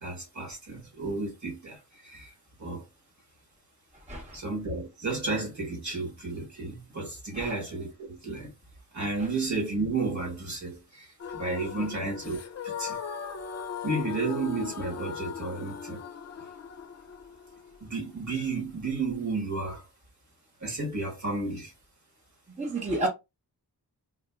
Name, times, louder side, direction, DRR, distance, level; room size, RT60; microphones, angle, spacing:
voice 1, 0.0-2.3 2.6-2.8 4.3-8.5 8.9-12.4 12.6-13.0 13.8-16.0 17.8-19.8 20.6-21.7, right 3 dB, 45° right, 1.3 m, -32 dB
voice 2, 4.1-4.4 7.3-7.5 9.2-9.3 11.8-11.9 22.6-23.1, right 2 dB, 20° right, 0.7 m, -31 dB
sound 1, 11.2-19.1, left 7 dB, 45° left, 0.4 m, -39 dB
3.8 x 2.4 x 2.3 m
wide cardioid pair, 85°, 40 cm